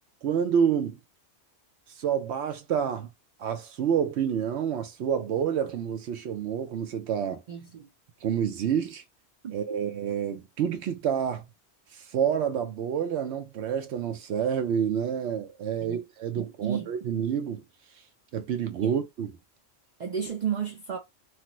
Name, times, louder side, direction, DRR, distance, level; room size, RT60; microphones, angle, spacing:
voice 1, 0.2-1.0 2.0-3.1 3.4-7.4 8.2-9.0 9.5-11.5 11.9-17.6 18.3-19.3, right 8 dB, 80° right, 0.9 m, -28 dB
voice 2, 7.5-7.9 9.4-9.5 15.8-16.0 16.4-16.9 18.8-18.9 20.0-21.0, right 8 dB, 55° right, 0.5 m, -32 dB
3.2 x 2.1 x 2.9 m
omnidirectional pair, 1.1 m